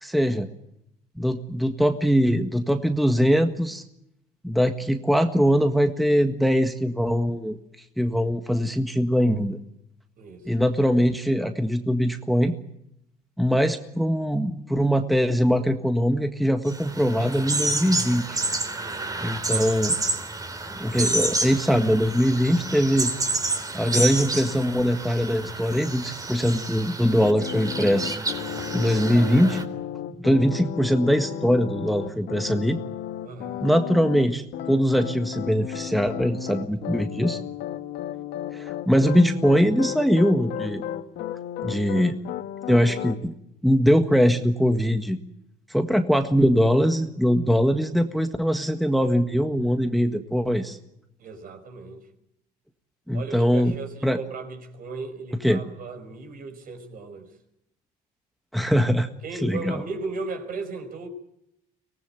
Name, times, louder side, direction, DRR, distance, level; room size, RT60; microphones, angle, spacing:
voice 1, 0.0-0.5 1.2-3.8 4.4-7.6 8.0-9.6 10.4-12.5 13.4-18.4 19.2-19.9 20.7-23.1 23.7-28.2 28.7-29.6 30.2-32.8 33.6-37.4 38.5-40.8 41.6-42.2 42.7-43.3 43.6-45.2 45.7-50.8 53.1-53.7 54.0-54.2 55.4-55.6 58.5-59.1 59.4-59.8, equal, ahead, 1.6 m, -22 dB
sound 1, 16.7-29.6, right 2 dB, 20° right, 3.4 m, -29 dB
voice 2, 18.8-19.2 33.2-33.6 51.2-52.0 53.1-57.3 59.2-61.1, right 3 dB, 55° right, 5.5 m, -36 dB
sound 2, 27.2-34.3 34.5-43.2, left 10 dB, 80° left, 1.8 m, -34 dB
24.5 x 18.5 x 9.1 m
cardioid pair, 110°, 17 cm